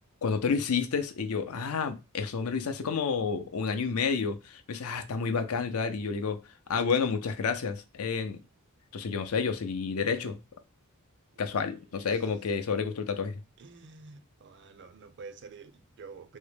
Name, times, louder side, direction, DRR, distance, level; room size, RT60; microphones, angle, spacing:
voice 1, 0.2-6.4 6.7-8.4 8.9-10.4 11.4-13.4, left 5 dB, 85° left, 0.6 m, -30 dB
voice 2, 13.6-16.4, right 4 dB, 55° right, 0.5 m, -48 dB
3.6 x 2.1 x 3.3 m
head